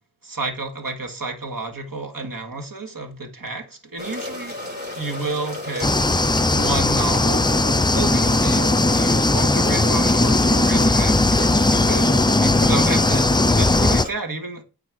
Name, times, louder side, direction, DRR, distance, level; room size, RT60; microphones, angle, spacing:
voice 1, 0.2-4.6 5.0-6.0 6.5-7.5 7.9-14.6, right 3 dB, 60° right, 2.1 m, -31 dB
sound 1, 4.0-14.1, left 2 dB, 25° right, 4.5 m, -33 dB
sound 2, 5.8-14.0, left 2 dB, 10° left, 0.4 m, -18 dB
8.9 x 4.8 x 6.2 m
wide cardioid pair, 55°, 39 cm